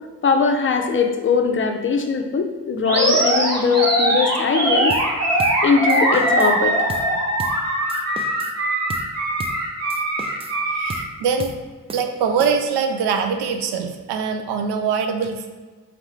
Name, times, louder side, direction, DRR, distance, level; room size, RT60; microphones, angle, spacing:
voice 1, 0.2-4.9 5.6-6.7, left 5 dB, 30° left, 5 dB, 0.5 m, -20 dB
Animal, 2.9-11.0, right 1 dB, 40° right, 1.3 m, -21 dB
sound 1, 4.9-5.1 5.4-5.6 5.9-6.6 6.9-7.1 7.4-7.6 7.9-8.6 8.9-9.1 9.4-9.6 9.9-10.6 10.9-11.1 11.4-11.6 11.9-12.8, right 3 dB, 15° right, 0.3 m, -35 dB
voice 2, 10.7-11.5 11.9-15.5, right 6 dB, 75° right, 5 dB, 0.6 m, -23 dB
3.6 x 3.3 x 3.1 m, 1.3 s
hypercardioid pair, 40°, 39 cm